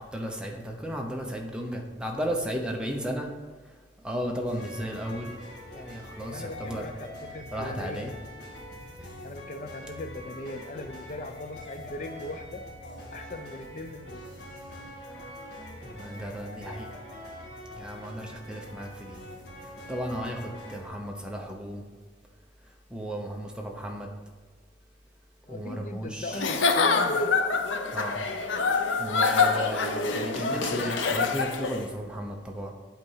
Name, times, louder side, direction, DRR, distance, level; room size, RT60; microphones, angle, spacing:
voice 1, 0.1-3.3 4.0-5.3 5.7-6.9 7.5-8.1 15.8-16.9 17.8-19.2 19.9-21.8 22.9-24.1 25.5-26.4 27.9-28.2 29.0-32.7, equal, 5° right, 1 dB, 0.7 m, -34 dB
sound 1, 4.5-20.9, left 1 dB, 65° left, 1.8 m, -43 dB
voice 2, 6.3-8.1 9.2-12.6 13.1-14.3 25.5-27.4, left 2 dB, 40° left, 8 dB, 0.5 m, -39 dB
Giggle / Chuckle chortle, 26.3-31.8, left 4 dB, 85° left, 0.6 m, -25 dB
8.2 x 4.3 x 5.6 m, 1.4 s
head